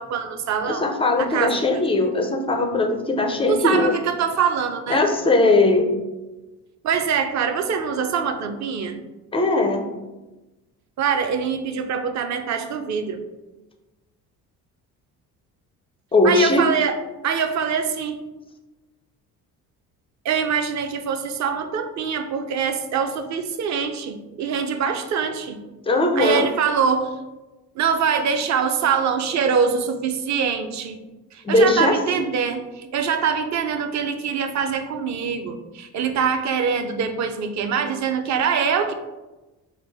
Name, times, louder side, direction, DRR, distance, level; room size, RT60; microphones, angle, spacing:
voice 1, 0.0-0.9 1.2-1.8 3.5-5.0 6.8-9.0 11.0-13.2 16.2-17.0 17.2-18.2 20.2-25.6 26.2-27.1 27.8-31.0 31.3-38.9, right 6 dB, 40° right, 7 dB, 0.5 m, -24 dB
voice 2, 0.6-4.0 4.9-5.9 9.3-9.8 16.1-16.7 25.9-26.5 31.4-32.0, left 2 dB, 15° left, 3 dB, 0.3 m, -19 dB
4.5 x 2.1 x 3.4 m, 1.1 s
hypercardioid pair, 55°, 46 cm